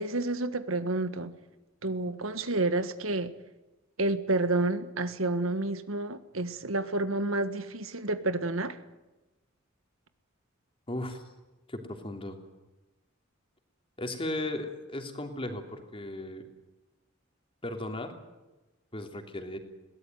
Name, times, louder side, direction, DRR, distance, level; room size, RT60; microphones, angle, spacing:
voice 1, 0.0-1.3 1.8-3.3 4.0-8.8, right 2 dB, 90° right, 11 dB, 1.6 m, -29 dB
voice 2, 10.9-11.2 11.7-12.4 14.0-16.5 17.6-18.1 18.9-19.6, left 1 dB, 25° left, 5 dB, 3.2 m, -36 dB
22.0 x 18.0 x 9.4 m, 1.1 s
head